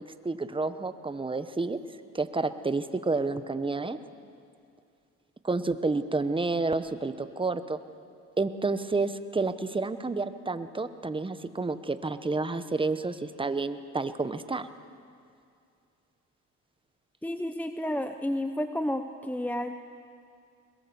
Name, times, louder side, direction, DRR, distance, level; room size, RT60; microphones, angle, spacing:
voice 1, 0.2-1.8 2.1-4.0 5.4-7.8 8.4-14.7, right 3 dB, 15° right, 11 dB, 1.1 m, -30 dB
voice 2, 17.2-19.7, left 1 dB, 5° left, 8 dB, 0.8 m, -31 dB
21.5 x 21.5 x 7.1 m, 2.4 s
cardioid pair, 90°, 30 cm